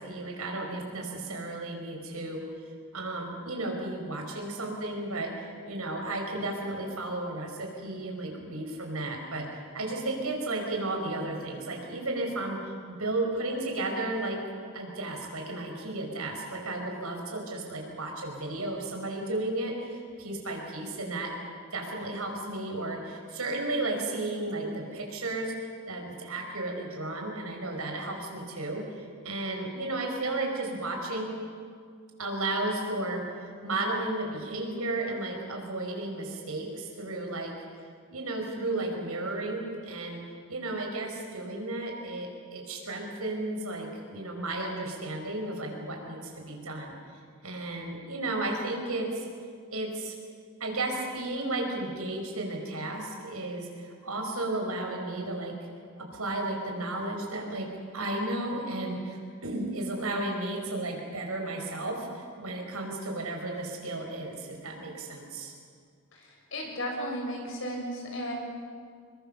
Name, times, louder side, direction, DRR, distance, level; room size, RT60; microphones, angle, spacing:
voice 1, 0.0-2.5 2.9-9.5 9.7-14.4 14.7-21.3 21.7-31.4 32.2-33.3 33.6-37.5 38.1-40.2 40.5-46.9 47.4-49.3 49.7-50.1 50.6-55.6 56.0-65.5, right 2 dB, 80° right, 2 dB, 5.5 m, -33 dB
voice 2, 66.5-68.3, equal, 60° left, 0 dB, 6.8 m, -34 dB
28.0 x 22.0 x 7.0 m, 2.1 s
head